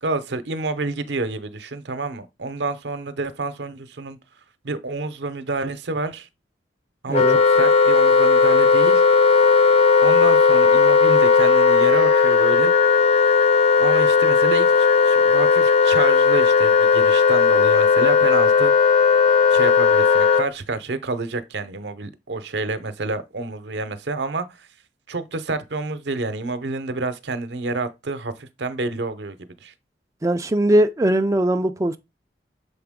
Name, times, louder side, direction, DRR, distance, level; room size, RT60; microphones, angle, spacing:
voice 1, 0.0-4.2 4.6-6.3 7.0-9.0 10.0-12.7 13.8-18.7 19.5-24.7 25.1-29.7, right 3 dB, 70° right, 0.8 m, -28 dB
Wind instrument woodwind instrument, 7.1-20.5, left 5 dB, 35° left, 0.6 m, -16 dB
voice 2, 7.1-7.4 30.2-32.0, right 1 dB, 20° right, 0.4 m, -20 dB
6.8 x 4.4 x 3.6 m
head